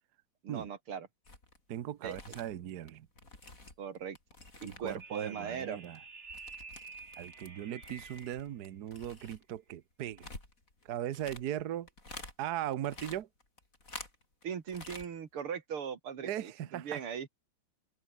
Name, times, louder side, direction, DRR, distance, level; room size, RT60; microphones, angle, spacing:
voice 1, 0.4-1.1 2.0-2.2 3.8-4.2 4.6-5.8 14.4-17.3, right 7 dB, 85° right, 3.0 m, -39 dB
sound 1, 1.3-1.6 1.9-5.2 5.4-7.5 7.8-12.4 12.7-14.4 14.7-15.1 15.4-15.5, left 2 dB, 40° left, 5.7 m, -49 dB
voice 2, 1.7-3.1 4.6-6.0 7.2-10.3 10.8-11.9 12.4-13.3 16.2-17.0, right 11 dB, 55° right, 1.3 m, -38 dB
sound 2, 5.0-8.5, right 4 dB, 30° right, 2.6 m, -49 dB
open air
omnidirectional pair, 2.3 m